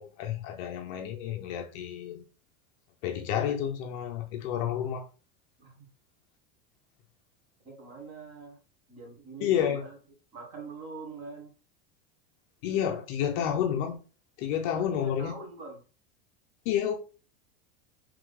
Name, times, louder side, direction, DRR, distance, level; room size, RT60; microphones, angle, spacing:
voice 1, 0.0-2.2 3.0-5.0 9.4-9.8 12.6-14.0 14.4-15.4 16.7-17.0, left 9 dB, 35° left, 0.4 m, -30 dB
voice 2, 7.6-8.6 8.9-10.0 10.3-11.5 14.7-15.8, right 3 dB, 45° right, 1.4 m, -44 dB
3.5 x 3.1 x 3.4 m
supercardioid pair, 170°, 31 cm